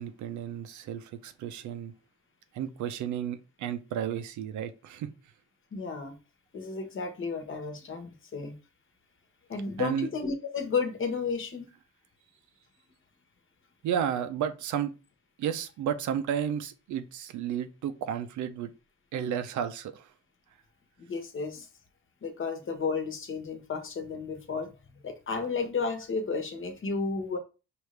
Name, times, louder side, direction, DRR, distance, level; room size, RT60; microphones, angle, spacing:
voice 1, 0.0-1.9 2.5-5.1 9.8-10.1 13.8-14.9 15.4-18.7 19.1-20.1, right 9 dB, 75° right, 0.6 m, -32 dB
voice 2, 5.7-6.2 6.5-8.6 9.5-11.7 21.0-21.7 22.2-24.7 25.0-27.4, left 4 dB, 40° left, 1.2 m, -32 dB
4.9 x 2.6 x 3.2 m
cardioid pair, 90°, 30 cm